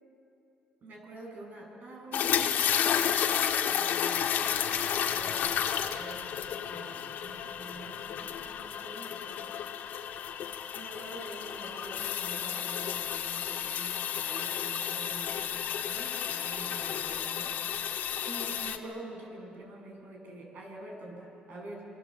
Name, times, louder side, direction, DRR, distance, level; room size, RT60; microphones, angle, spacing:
voice 1, 0.8-9.5 10.7-17.6 17.9-21.9, right 1 dB, 65° right, 0 dB, 7.9 m, -46 dB
sound 1, 2.1-18.8, left 9 dB, 75° left, 1.6 m, -32 dB
27.0 x 24.5 x 7.8 m, 2.9 s
cardioid pair, 100°, 3 cm